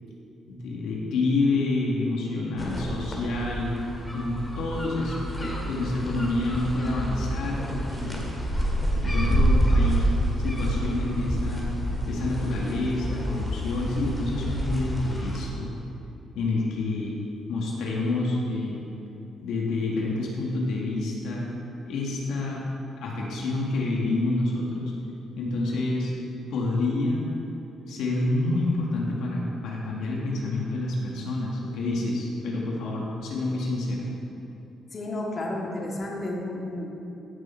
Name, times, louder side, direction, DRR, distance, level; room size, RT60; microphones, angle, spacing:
voice 1, 0.5-3.8 4.1-8.3 9.0-11.7 12.1-15.7 16.4-17.2 17.5-18.9 19.4-21.5 21.9-22.7 23.0-24.9 25.4-26.1 26.5-27.3 27.9-34.1, left 2 dB, 80° left, -3 dB, 1.9 m, -28 dB
sound 1, 2.6-15.4, right 1 dB, 10° left, 2.2 m, -28 dB
voice 2, 34.9-36.9, left 1 dB, 40° left, -2 dB, 1.9 m, -32 dB
15.0 x 6.5 x 4.5 m, 2.9 s
cardioid pair, 90°, 0 cm